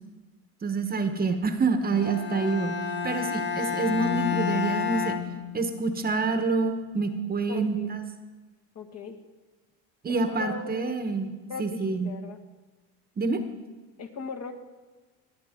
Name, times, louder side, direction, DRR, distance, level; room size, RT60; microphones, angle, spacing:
voice 1, 0.6-2.7 3.0-5.1 5.5-8.0 10.0-11.3 11.6-12.1 13.2-13.4, right 4 dB, 25° right, 7 dB, 1.1 m, -27 dB
Bowed string instrument, 1.9-6.0, left 8 dB, 30° left, 1.2 m, -30 dB
voice 2, 7.5-7.9 8.7-9.2 10.1-11.1 11.5-12.4 14.0-14.5, left 5 dB, 45° left, 5 dB, 1.6 m, -38 dB
19.5 x 8.7 x 3.7 m, 1.3 s
supercardioid pair, 105°, 35 cm